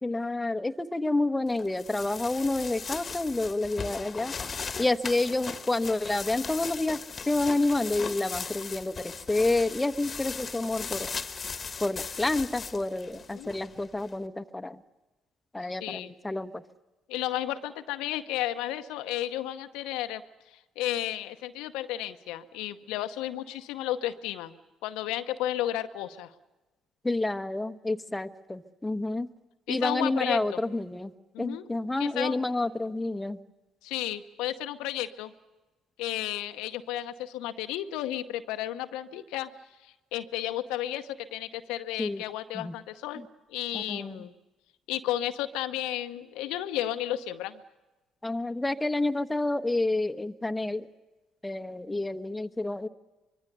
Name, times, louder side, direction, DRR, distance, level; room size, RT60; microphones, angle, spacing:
voice 1, 0.0-4.3 4.8-11.1 11.8-14.8 15.5-16.6 27.0-29.3 29.7-33.4 42.0-42.2 42.5-42.8 43.2-43.3 43.7-44.3 48.2-50.9 51.4-52.9, left 2 dB, 15° left, 8 dB, 1.1 m, -29 dB
sound 1, 1.6-14.1, left 5 dB, 40° left, 1.3 m, -38 dB
voice 2, 15.8-16.1 17.1-20.2 20.8-24.5 24.8-26.3 29.7-30.4 31.3-31.7 32.0-32.4 33.8-35.3 36.0-39.5 39.8-43.2 43.5-44.3 44.9-47.6, left 13 dB, 70° left, 9 dB, 0.9 m, -33 dB
24.5 x 23.0 x 6.9 m, 1.1 s
hypercardioid pair, 50°, 0 cm